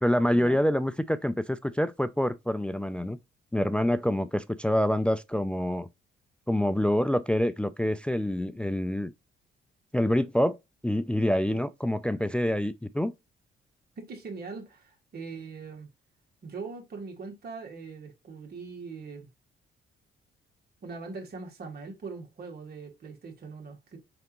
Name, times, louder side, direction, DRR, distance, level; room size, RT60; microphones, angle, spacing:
voice 1, 0.0-3.2 3.5-5.9 6.5-9.1 9.9-10.6 10.8-13.1, left 1 dB, 5° left, 0.3 m, -26 dB
voice 2, 14.0-15.9 16.4-19.3 20.8-24.0, right 4 dB, 50° right, 1.8 m, -41 dB
4.9 x 3.4 x 3.0 m
cardioid pair, 90°, 20 cm